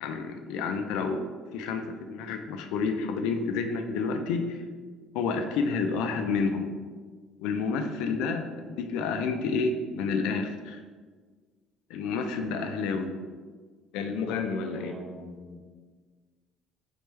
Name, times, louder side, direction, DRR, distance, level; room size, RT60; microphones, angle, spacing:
voice 1, 0.0-1.2 1.5-4.6 5.1-6.7 7.4-10.8 11.9-13.1 13.9-14.9, left 4 dB, 80° left, 6 dB, 0.4 m, -29 dB
voice 2, 14.6-15.6, right 1 dB, 15° right, -2 dB, 0.7 m, -43 dB
4.3 x 3.3 x 3.2 m, 1.5 s
cardioid pair, 180°, 0 cm